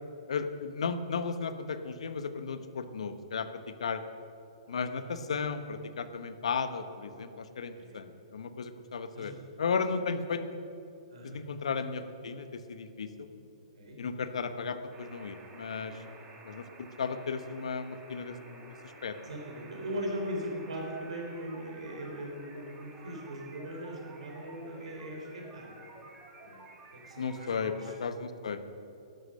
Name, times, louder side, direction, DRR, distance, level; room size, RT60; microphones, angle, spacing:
voice 1, 0.3-4.0 4.7-9.3 9.6-10.4 11.2-13.3 14.0-16.0 16.4-18.7 19.0-19.2 27.2-27.7 28.0-28.6, left 5 dB, 70° left, 10 dB, 1.0 m, -35 dB
voice 2, 4.7-5.1 7.7-8.0 9.1-9.4 11.1-11.4 13.7-14.0 15.7-16.1 19.2-25.7 26.4-26.6 26.9-27.9, equal, 70° right, 1 dB, 3.8 m, -40 dB
sound 1, 14.9-28.0, right 3 dB, 20° right, 2.0 m, -52 dB
12.0 x 11.5 x 6.4 m, 2.7 s
figure-of-eight pair, 120°, 3 cm